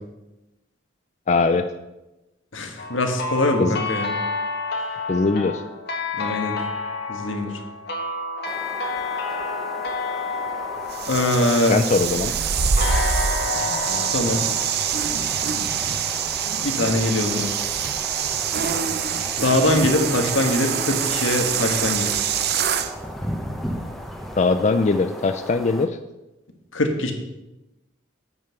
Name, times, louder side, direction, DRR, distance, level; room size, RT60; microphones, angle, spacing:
voice 1, 1.3-1.7 3.6-3.8 5.1-5.6 11.7-12.3 24.4-26.0, left 3 dB, 35° left, 8 dB, 0.4 m, -20 dB
voice 2, 2.5-4.1 6.1-6.6 7.1-7.5 11.1-11.8 14.1-14.4 16.6-17.5 19.4-22.2 26.7-27.1, left 2 dB, 75° left, 4 dB, 1.5 m, -22 dB
sound 1, 2.8-12.0 12.8-15.7, left 3 dB, 55° left, 1.5 m, -30 dB
sound 2, 8.4-25.9, equal, ahead, 0.9 m, -36 dB
sound 3, 10.9-22.9, right 7 dB, 55° right, 0.7 m, -25 dB
8.9 x 5.5 x 6.9 m, 0.99 s
head